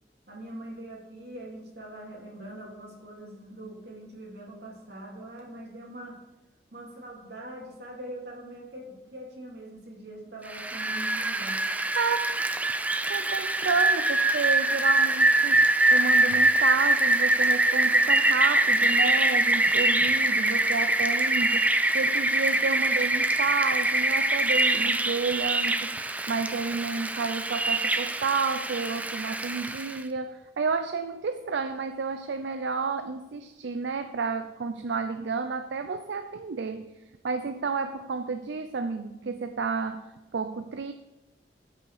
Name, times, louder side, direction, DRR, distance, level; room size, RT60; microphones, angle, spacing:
voice 1, 0.3-6.2 6.7-11.6 16.3-16.4, right 1 dB, 70° right, -2 dB, 2.7 m, -42 dB
Rain, 10.5-30.0, right 2 dB, 10° right, 0.3 m, -24 dB
voice 2, 12.0-12.4 13.0-36.9 37.2-40.9, right 4 dB, 90° right, 9 dB, 0.5 m, -31 dB
12.5 x 5.6 x 4.9 m, 1.0 s
head